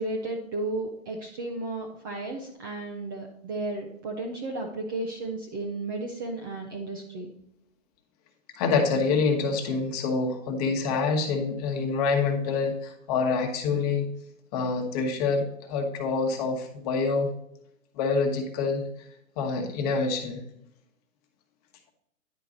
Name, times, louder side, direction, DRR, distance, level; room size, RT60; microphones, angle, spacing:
voice 1, 0.0-7.3, right 2 dB, 15° right, 0 dB, 0.5 m, -33 dB
voice 2, 8.6-14.1 14.5-17.3 17.9-18.8 19.4-20.4, left 4 dB, 30° left, 4 dB, 1.3 m, -26 dB
10.5 x 4.6 x 3.8 m, 0.77 s
hypercardioid pair, 150°, 40 cm